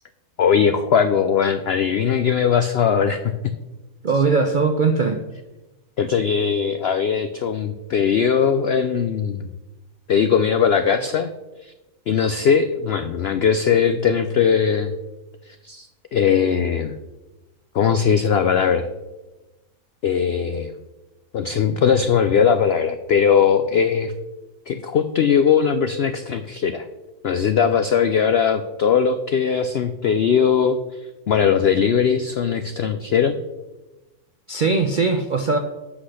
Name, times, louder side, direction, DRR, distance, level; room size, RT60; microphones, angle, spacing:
voice 1, 0.4-3.5 6.0-9.5 10.1-11.3 11.6-11.7 12.1-14.9 15.6-17.0 17.7-18.9 20.0-20.7 21.3-24.1 24.7-26.9 27.2-33.4, left 7 dB, 80° left, 10 dB, 0.5 m, -19 dB
voice 2, 4.0-5.2 34.5-35.6, right 4 dB, 65° right, 5 dB, 0.5 m, -20 dB
8.0 x 6.0 x 6.3 m, 1.1 s
omnidirectional pair, 1.7 m